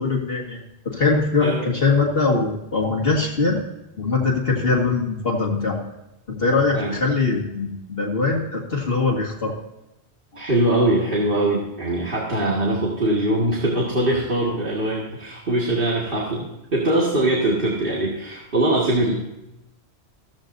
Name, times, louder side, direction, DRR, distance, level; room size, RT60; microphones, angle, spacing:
voice 1, 0.0-3.6 4.0-5.8 6.3-9.5, left 3 dB, 55° left, -2 dB, 2.2 m, -22 dB
voice 2, 10.3-19.1, right 1 dB, 50° right, -4 dB, 2.2 m, -22 dB
14.5 x 14.5 x 2.7 m, 0.93 s
omnidirectional pair, 1.2 m